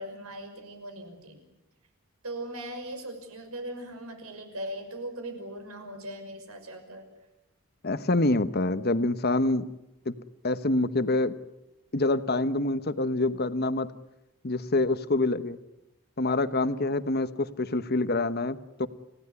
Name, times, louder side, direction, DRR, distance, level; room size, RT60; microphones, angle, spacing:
voice 1, 0.0-1.4 2.2-7.1, right 1 dB, 85° right, 6 dB, 5.9 m, -39 dB
voice 2, 7.8-9.7 10.1-10.2 10.4-11.3 11.9-13.9 14.4-15.6 16.2-18.9, left 2 dB, 45° left, 13 dB, 1.1 m, -26 dB
29.0 x 16.5 x 9.8 m, 0.92 s
head